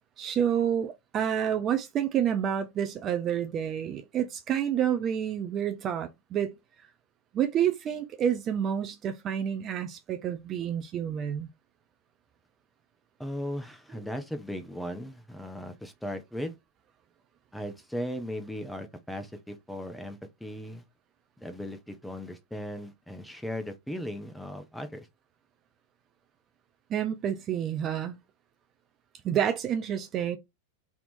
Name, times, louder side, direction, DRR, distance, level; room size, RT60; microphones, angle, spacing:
voice 1, 0.2-6.5 7.3-11.5 26.9-28.2 29.2-30.4, right 9 dB, 30° right, 0.5 m, -29 dB
voice 2, 13.2-16.5 17.5-20.8 21.4-25.1, equal, 5° left, 0.8 m, -37 dB
3.5 x 2.9 x 4.0 m
figure-of-eight pair, 90°, 0 cm